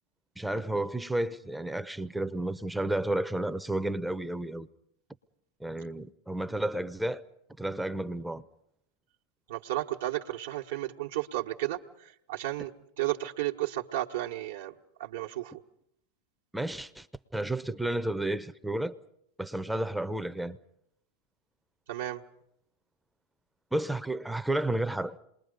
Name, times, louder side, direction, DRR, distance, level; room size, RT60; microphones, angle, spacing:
voice 1, 0.4-4.7 5.6-7.2 7.6-8.4 16.5-17.1 17.3-19.0 19.4-20.6 23.7-25.2, right 1 dB, 5° right, 0.7 m, -31 dB
voice 2, 9.5-15.6 21.9-22.2, right 15 dB, 70° right, 1.1 m, -33 dB
27.5 x 21.5 x 5.2 m
hypercardioid pair, 100°, 0 cm